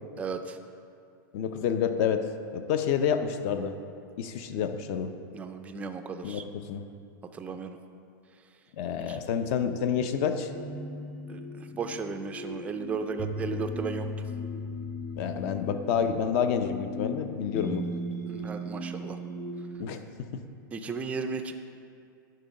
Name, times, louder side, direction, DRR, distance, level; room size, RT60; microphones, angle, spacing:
voice 1, 0.2-0.6 5.3-6.4 7.3-7.8 9.1-9.2 11.3-14.1 18.3-19.2 20.7-21.5, right 5 dB, 10° right, 7 dB, 0.4 m, -35 dB
voice 2, 1.3-2.3 2.5-3.8 4.2-5.1 6.2-6.8 8.8-10.5 15.2-17.9 19.8-20.3, left 7 dB, 45° left, 9 dB, 0.5 m, -29 dB
sound 1, 10.5-19.8, left 1 dB, 20° left, 1.0 m, -37 dB
11.0 x 3.8 x 5.2 m, 2.4 s
supercardioid pair, 150°, 11 cm